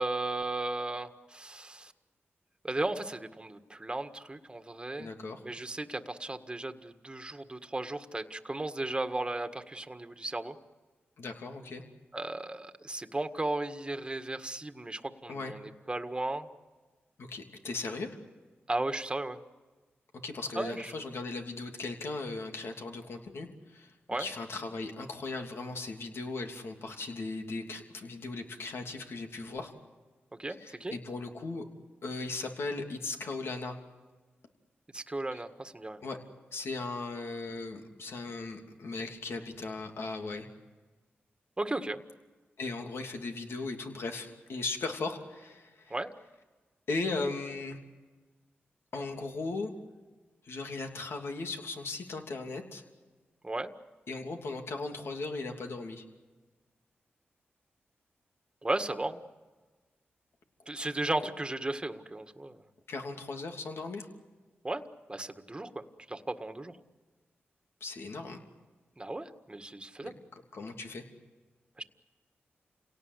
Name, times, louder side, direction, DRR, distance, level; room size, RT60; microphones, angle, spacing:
voice 1, 0.0-1.9 2.6-5.1 5.4-10.6 12.1-16.5 18.7-19.4 20.5-20.9 24.1-24.3 30.4-30.9 34.9-36.0 41.6-42.0 45.9-46.1 53.4-53.7 58.6-59.2 60.7-62.5 64.6-64.8 65.1-66.8 69.0-70.1 71.8-71.9, right 2 dB, 20° right, 8 dB, 1.8 m, -35 dB
voice 2, 5.0-5.4 11.2-11.8 15.3-15.5 17.2-18.1 20.2-23.9 24.2-29.7 30.6-31.6 32.0-33.8 35.3-35.4 36.0-36.2 36.5-40.5 42.6-45.9 46.9-47.8 48.9-49.7 50.4-52.8 54.1-56.0 62.9-64.1 67.8-68.4 70.3-71.0, left 3 dB, 70° left, 3 dB, 3.0 m, -37 dB
28.5 x 18.0 x 8.2 m, 1.3 s
cardioid pair, 60°, 4 cm